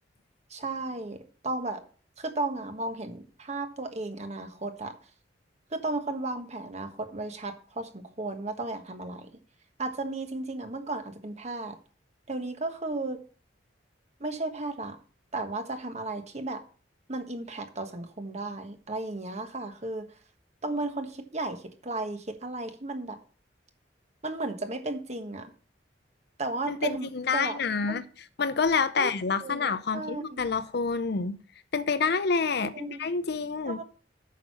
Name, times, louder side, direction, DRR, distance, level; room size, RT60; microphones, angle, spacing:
voice 1, 0.5-1.8 2.2-5.0 5.7-9.3 9.8-11.8 12.3-13.2 14.2-15.0 15.3-16.6 17.1-20.1 20.6-23.2 24.2-25.5 26.4-27.6 27.9-28.0 29.0-29.1 29.4-30.5 32.6-33.0 33.7-33.8, right 2 dB, 40° right, 1.4 m, -34 dB
voice 2, 26.7-28.0 28.4-31.4 31.7-33.8, left 5 dB, 60° left, 0.6 m, -28 dB
9.2 x 6.5 x 5.7 m
head